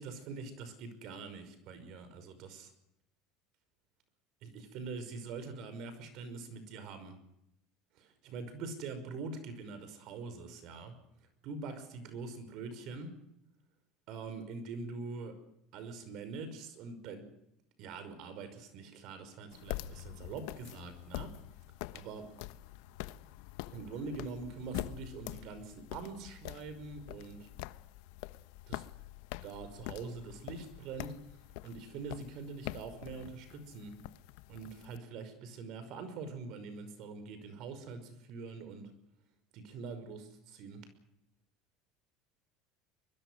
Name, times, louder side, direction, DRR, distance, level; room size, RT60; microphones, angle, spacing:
voice 1, 0.0-2.7 4.4-7.2 7.9-10.9 11.4-13.1 14.1-15.4 15.7-17.2 17.8-21.3 21.9-22.3 23.7-27.5 28.7-28.8 29.4-31.2 31.6-34.0 34.5-38.9 39.5-40.8, right 4 dB, 55° right, 10 dB, 5.5 m, -44 dB
sound 1, 19.5-35.0, left 17 dB, 75° left, 1.0 m, -45 dB
24.0 x 22.0 x 6.4 m, 0.80 s
supercardioid pair, 135°, 0 cm